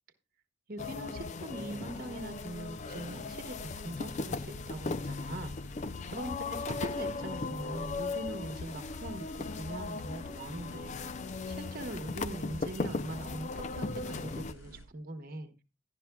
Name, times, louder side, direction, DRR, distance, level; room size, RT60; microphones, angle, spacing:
voice 1, 0.7-5.6 6.1-11.1 11.5-15.5, right 1 dB, 45° right, 6 dB, 1.1 m, -42 dB
sound 1, 0.8-14.5, left 4 dB, 35° left, 0.4 m, -38 dB
sound 2, 1.9-14.8, equal, 80° left, 4.1 m, -51 dB
11.5 x 11.5 x 2.2 m, 0.31 s
head